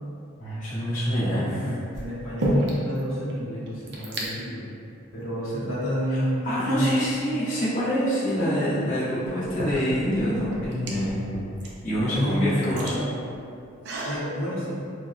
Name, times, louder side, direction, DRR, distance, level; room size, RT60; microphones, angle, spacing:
voice 1, 0.4-1.8 6.1-11.3 11.8-13.0, equal, 35° left, -12 dB, 0.7 m, -26 dB
sound 1, 0.7-1.1 1.9-3.0 3.3-3.4 3.6-4.3 5.1-5.2 5.9-6.7 8.4-8.5 9.2-14.2, right 1 dB, 55° right, 0.4 m, -33 dB
voice 2, 1.6-4.7 5.1-6.9 12.0-12.6 14.0-14.8, equal, 70° left, -9 dB, 0.8 m, -29 dB
3.4 x 2.1 x 2.5 m, 2.5 s
head